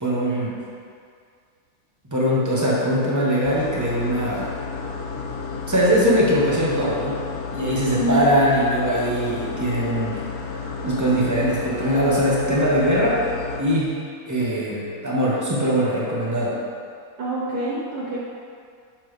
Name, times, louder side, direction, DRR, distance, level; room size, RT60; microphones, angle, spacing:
voice 1, 0.0-0.6 2.1-4.5 5.7-7.1 7.5-10.5 10.8-13.2 13.6-14.0 14.3-16.6, equal, 15° right, -6 dB, 0.8 m, -21 dB
sound 1, 3.4-13.6, left 4 dB, 80° left, 1.1 m, -32 dB
voice 2, 7.9-8.4 17.2-18.2, right 2 dB, 85° right, -7 dB, 1.5 m, -26 dB
6.9 x 4.4 x 3.1 m, 2.2 s
omnidirectional pair, 1.6 m